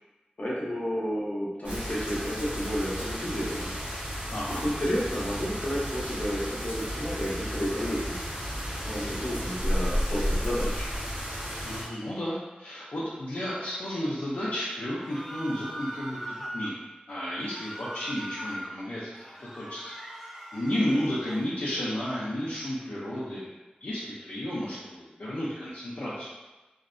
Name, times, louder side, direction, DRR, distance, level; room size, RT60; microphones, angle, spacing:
voice 1, 0.4-3.8 4.5-8.2 8.8-10.9, equal, 55° left, -7 dB, 0.8 m, -31 dB
sound 1, 1.6-11.8, equal, 45° right, 1.1 m, -33 dB
voice 2, 4.3-4.7 11.6-16.8 17.1-23.5 23.8-26.3, left 1 dB, 75° left, -9 dB, 0.5 m, -32 dB
sound 2, 15.0-16.7 17.4-18.7 19.1-21.4, right 1 dB, 5° right, 0.4 m, -40 dB
2.6 x 2.1 x 2.4 m, 1.1 s
wide cardioid pair, 45°, 3 cm